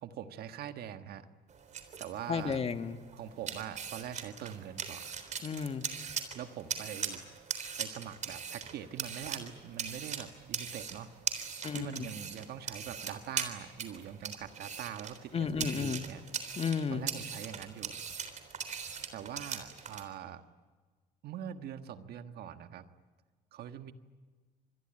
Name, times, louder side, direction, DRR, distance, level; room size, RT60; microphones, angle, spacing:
voice 1, 0.0-1.3 2.0-2.6 3.1-5.1 6.0-7.2 7.8-11.1 11.8-16.2 16.9-18.0 19.1-20.4 21.2-22.8 23.5-23.9, right 9 dB, 70° right, 10 dB, 1.5 m, -43 dB
sound 1, 1.5-20.0, right 7 dB, 45° right, 3.6 m, -41 dB
voice 2, 2.3-3.0 5.4-5.8 11.6-11.9 15.3-16.0 16.6-17.0, left 6 dB, 35° left, 9 dB, 1.6 m, -32 dB
27.0 x 21.5 x 8.9 m, 1.4 s
cardioid pair, 110°, 17 cm